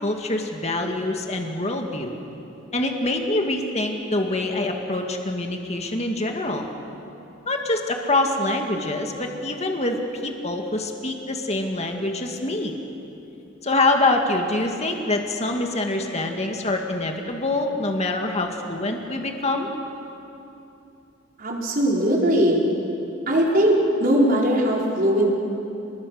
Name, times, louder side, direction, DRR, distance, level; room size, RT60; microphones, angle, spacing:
voice 1, 0.0-2.1 2.7-6.7 7.5-12.7 13.6-19.7, left 2 dB, 35° left, 3 dB, 2.1 m, -25 dB
voice 2, 21.4-22.6 23.3-25.3, right 1 dB, 50° right, -3 dB, 4.6 m, -20 dB
29.5 x 21.5 x 6.5 m, 2.9 s
head